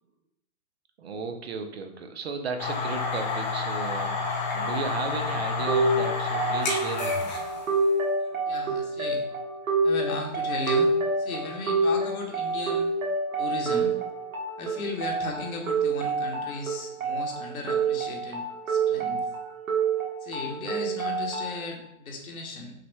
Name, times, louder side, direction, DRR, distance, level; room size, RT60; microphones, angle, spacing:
voice 1, 1.0-4.2 4.5-7.3, right 4 dB, 45° right, 7 dB, 0.5 m, -35 dB
sound 1, 2.6-7.8, left 4 dB, 30° left, 0.5 m, -29 dB
sound 2, 5.7-21.7, right 3 dB, 65° right, 1.2 m, -28 dB
voice 2, 8.5-9.2 9.8-12.9 13.4-14.0 14.6-19.2 20.2-22.7, left 3 dB, 70° left, 2 dB, 1.2 m, -35 dB
5.8 x 2.2 x 3.2 m, 0.78 s
hypercardioid pair, 150°, 44 cm